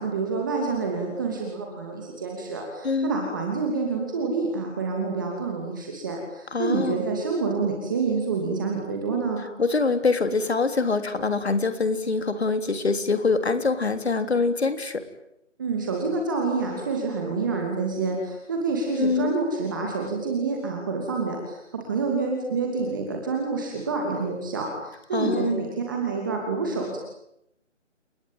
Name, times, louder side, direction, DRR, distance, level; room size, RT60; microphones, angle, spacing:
voice 1, 0.0-9.4 15.6-27.0, right 4 dB, 15° right, 0 dB, 2.9 m, -28 dB
voice 2, 2.8-3.2 6.5-7.0 9.6-15.0 19.0-19.4 25.1-25.5, left 4 dB, 55° left, 9 dB, 3.6 m, -24 dB
30.0 x 20.0 x 9.2 m, 0.80 s
hypercardioid pair, 175°, 37 cm